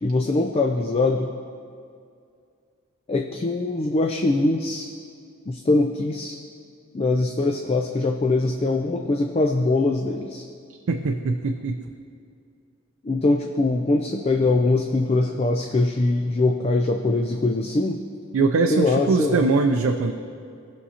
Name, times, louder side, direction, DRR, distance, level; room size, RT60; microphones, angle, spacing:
voice 1, 0.0-1.3 3.1-4.9 5.5-6.4 6.9-10.5 13.0-18.0 18.7-19.5, left 2 dB, 30° left, 4 dB, 0.3 m, -22 dB
voice 2, 10.9-11.8 18.3-20.1, right 3 dB, 80° right, 4 dB, 0.4 m, -21 dB
18.0 x 6.0 x 2.8 m, 2.4 s
head